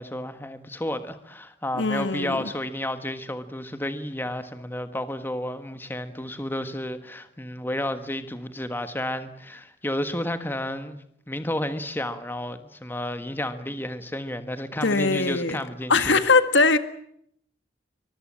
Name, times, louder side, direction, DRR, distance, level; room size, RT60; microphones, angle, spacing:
voice 1, 0.0-16.3, left 1 dB, 10° left, 1.4 m, -31 dB
voice 2, 1.8-2.4 14.8-15.6 15.9-16.8, left 3 dB, 75° left, 1.8 m, -21 dB
24.0 x 22.0 x 8.7 m
head